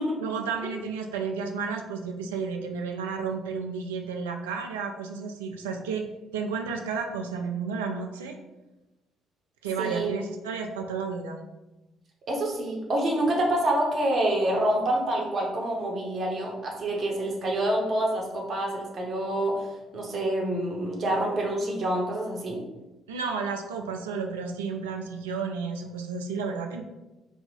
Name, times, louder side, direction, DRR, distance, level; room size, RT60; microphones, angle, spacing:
voice 1, 0.2-6.0 6.3-8.4 9.6-11.4 23.1-26.8, right 5 dB, 75° right, 4 dB, 0.3 m, -32 dB
voice 2, 9.8-10.1 12.3-19.7 19.9-22.6, right 1 dB, 45° right, -1 dB, 0.8 m, -27 dB
2.7 x 2.3 x 4.1 m, 1.0 s
figure-of-eight pair, 45°, 0 cm